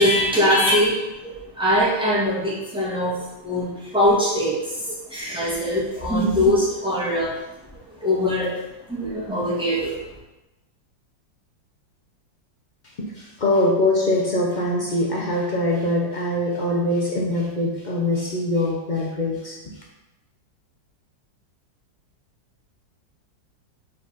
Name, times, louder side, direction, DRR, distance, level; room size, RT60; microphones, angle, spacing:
voice 1, 0.0-7.3 8.0-8.5 8.9-10.0, equal, 5° right, -7 dB, 1.9 m, -22 dB
voice 2, 13.0-19.7, left 1 dB, 75° left, -3 dB, 0.4 m, -23 dB
5.7 x 4.3 x 5.1 m, 1.0 s
omnidirectional pair, 2.1 m